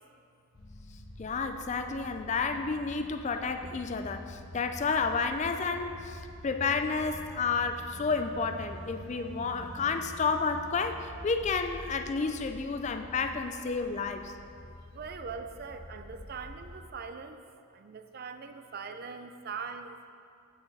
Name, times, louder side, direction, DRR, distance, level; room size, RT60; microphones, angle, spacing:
sound 1, 0.5-16.9, left 1 dB, 80° left, 1.1 m, -46 dB
voice 1, 1.2-14.3, left 4 dB, 35° left, 7 dB, 0.3 m, -31 dB
voice 2, 14.9-17.4 17.8-20.0, right 5 dB, 45° right, 8 dB, 0.4 m, -41 dB
8.7 x 6.3 x 4.7 m, 2.5 s
head